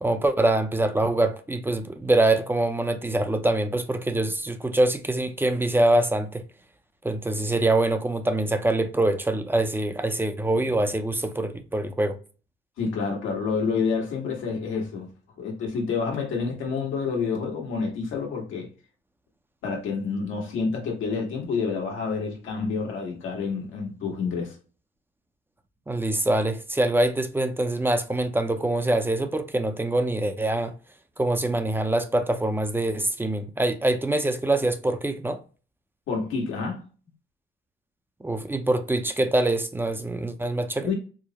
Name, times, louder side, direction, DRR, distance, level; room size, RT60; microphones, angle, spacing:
voice 1, 0.0-6.4 7.0-12.2 25.9-30.7 31.2-35.4 38.2-40.9, right 2 dB, 10° right, 0.5 m, -24 dB
voice 2, 12.8-15.1 15.4-18.7 19.6-24.5 36.1-36.8 40.8-40.9, left 5 dB, 85° left, 1.5 m, -28 dB
4.7 x 2.1 x 2.8 m
cardioid pair, 90°, 20 cm